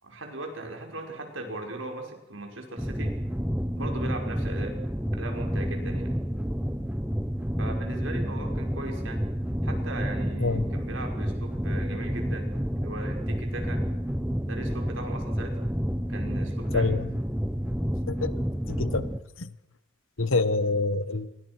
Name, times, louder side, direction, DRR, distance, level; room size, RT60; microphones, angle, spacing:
voice 1, 0.0-3.2 3.8-4.8 5.1-6.1 7.6-9.3 9.6-13.8 14.4-15.5 16.1-17.0, right 2 dB, 70° right, 3 dB, 5.7 m, -38 dB
sound 1, 2.8-19.2, equal, 5° right, 1.2 m, -30 dB
voice 2, 16.7-17.1 18.1-18.3 18.7-19.1 19.4-19.5 20.2-21.3, left 3 dB, 85° left, 14 dB, 1.4 m, -26 dB
27.5 x 23.5 x 6.2 m, 0.90 s
head